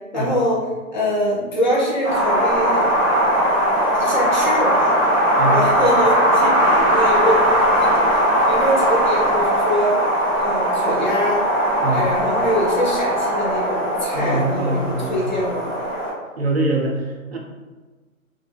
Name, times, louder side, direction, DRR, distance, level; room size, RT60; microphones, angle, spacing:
voice 1, 0.1-0.6 0.9-2.9 3.9-5.0 5.5-7.4 7.8-10.0 10.4-11.5 11.9-15.7, equal, 35° left, -5 dB, 0.5 m, -23 dB
Wind, 2.0-16.1, equal, 15° left, 0.9 m, -19 dB
voice 2, 5.4-5.7 11.8-12.1 14.1-15.4 16.4-17.4, right 1 dB, 50° right, -1 dB, 0.5 m, -23 dB
2.3 x 2.1 x 3.1 m, 1.3 s
hypercardioid pair, 170°, 43 cm